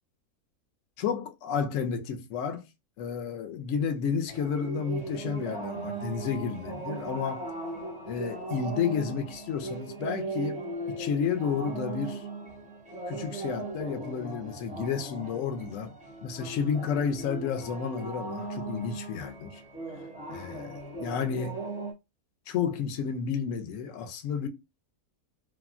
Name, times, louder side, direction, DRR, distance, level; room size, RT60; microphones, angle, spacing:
voice 1, 1.0-2.6 3.0-7.5 8.1-10.6 10.9-12.3 13.1-15.9 16.2-19.6 20.3-21.6 22.5-24.5, left 6 dB, 65° left, 0.9 m, -31 dB
sound 1, 4.3-21.9, right 2 dB, 10° right, 0.3 m, -38 dB
3.4 x 2.1 x 2.4 m
omnidirectional pair, 1.6 m